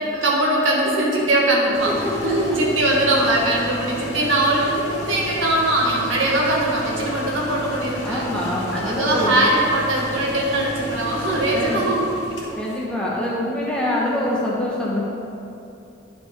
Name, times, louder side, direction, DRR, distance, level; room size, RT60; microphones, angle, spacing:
voice 1, 0.1-8.2 8.7-12.6, right 1 dB, 80° right, -3 dB, 1.5 m, -21 dB
sound 1, 1.7-12.8, equal, 70° left, 1.7 m, -33 dB
voice 2, 2.2-2.6 8.0-9.4 11.5-11.8 12.6-15.1, left 1 dB, 5° left, -7 dB, 1.4 m, -25 dB
10.5 x 5.9 x 3.8 m, 2.8 s
head